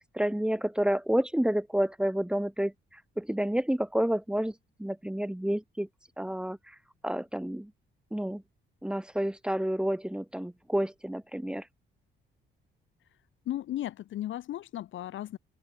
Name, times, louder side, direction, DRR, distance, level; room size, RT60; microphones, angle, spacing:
voice 1, 0.0-2.7 3.2-4.5 4.8-5.9 6.2-6.6 7.0-7.7 8.1-8.4 8.8-11.6, right 1 dB, 5° right, 2.5 m, -29 dB
voice 2, 13.4-15.4, left 13 dB, 75° left, 1.6 m, -35 dB
cardioid pair, 90°, 20 cm